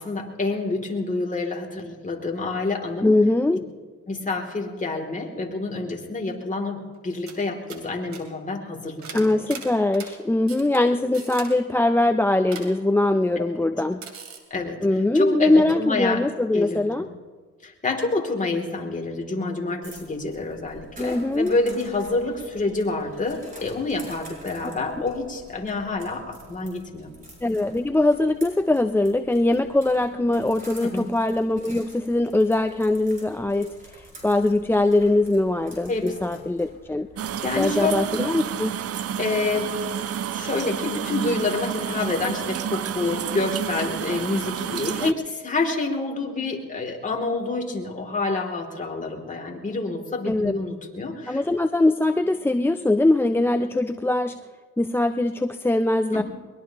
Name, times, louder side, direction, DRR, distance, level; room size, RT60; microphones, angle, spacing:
voice 1, 0.0-3.2 4.1-9.5 13.4-13.5 14.5-14.9 15.1-16.2 16.5-17.1 17.6-27.1 30.8-31.1 35.9-36.4 37.4-37.9 39.2-39.7 40.3-51.4 56.1-56.2, left 3 dB, 25° left, 1 dB, 2.9 m, -28 dB
voice 2, 3.0-3.6 9.1-14.0 14.8-17.1 21.0-21.5 27.4-37.1 37.6-38.8 45.0-45.1 50.3-50.5 51.3-54.4 54.8-56.2, left 2 dB, 10° left, 7 dB, 0.4 m, -22 dB
sound 1, 6.9-7.0 7.3-7.4 7.7-7.8 8.1-8.2 9.0-10.1 10.5-10.8 11.1-11.5 12.5-12.7 14.0-14.4, right 6 dB, 65° right, 2.7 m, -39 dB
sound 2, 19.8-38.1, right 1 dB, 25° right, 6.8 m, -48 dB
sound 3, 37.2-45.1, right 9 dB, 50° right, 0.6 m, -30 dB
22.5 x 21.5 x 3.0 m, 1.5 s
cardioid pair, 90°, 30 cm